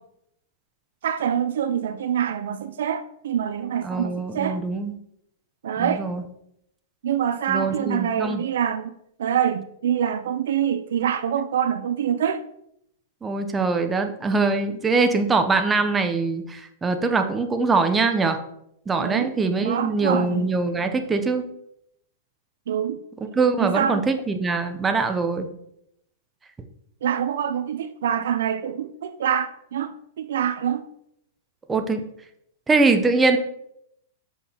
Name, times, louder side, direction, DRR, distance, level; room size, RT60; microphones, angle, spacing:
voice 1, 1.0-4.6 5.6-6.0 7.0-8.9 9.2-12.4 19.0-19.3 19.6-20.5 22.7-23.0 23.6-24.0 27.0-30.8, right 9 dB, 75° right, 0.4 m, -25 dB
voice 2, 3.8-5.0 5.8-6.2 7.5-8.4 13.2-18.4 18.9-21.5 23.4-25.5 31.7-32.0 32.7-33.4, right 3 dB, 15° right, 0.6 m, -23 dB
6.3 x 5.5 x 2.9 m
hypercardioid pair, 135°, 0 cm